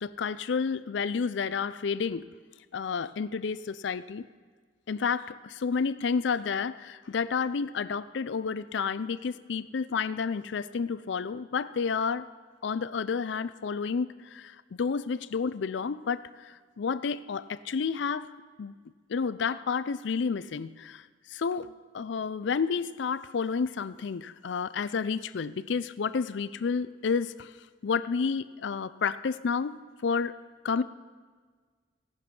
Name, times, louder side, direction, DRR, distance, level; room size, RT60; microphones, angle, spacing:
voice 1, 0.0-2.2 2.7-4.2 4.9-12.3 12.6-18.3 18.6-18.8 19.1-21.0 21.3-27.5 27.8-30.4 30.6-30.8, left 5 dB, 70° left, 15 dB, 0.4 m, -30 dB
17.5 x 6.1 x 5.4 m, 1.5 s
head